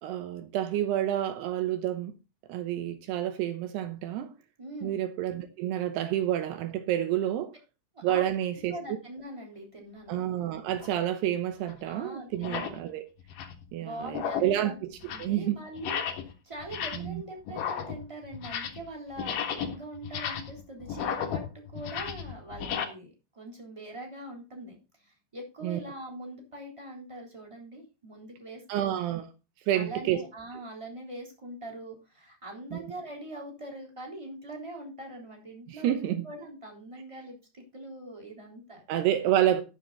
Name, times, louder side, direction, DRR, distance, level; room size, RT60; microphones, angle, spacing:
voice 1, 0.0-2.1 2.5-4.3 4.8-7.5 8.0-8.8 10.1-13.0 13.7-14.9 15.2-15.6 17.0-17.2 25.6-25.8 28.7-29.3 29.7-30.2 32.7-32.8 35.7-36.3 38.9-39.6, right 12 dB, 85° right, 2.3 m, -29 dB
voice 2, 4.6-4.9 7.9-8.3 8.5-10.3 11.8-12.7 13.8-14.8 15.1-28.9 29.7-39.1, right 1 dB, 10° right, 2.5 m, -43 dB
sound 1, 10.8-11.0 11.7-11.8 12.3-12.8 13.2-13.6 14.0-14.6 14.9-15.4 15.8-16.3 16.6-17.2 17.5-18.9 19.1-22.8, left 8 dB, 65° left, 2.2 m, -34 dB
13.0 x 7.6 x 4.0 m
omnidirectional pair, 6.0 m